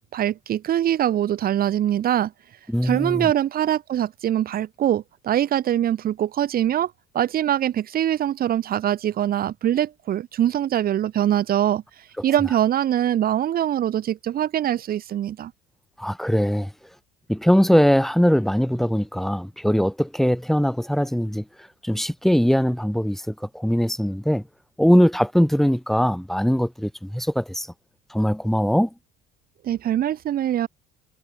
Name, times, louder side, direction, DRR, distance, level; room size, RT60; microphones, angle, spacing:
voice 1, 0.0-2.3 2.8-15.5 29.6-30.7, right 11 dB, 50° right, 3.6 m, -23 dB
voice 2, 2.7-3.3 16.0-16.7 17.3-24.5 24.8-27.7 28.1-28.9, equal, ahead, 7.4 m, -21 dB
supercardioid pair, 95°, 19 cm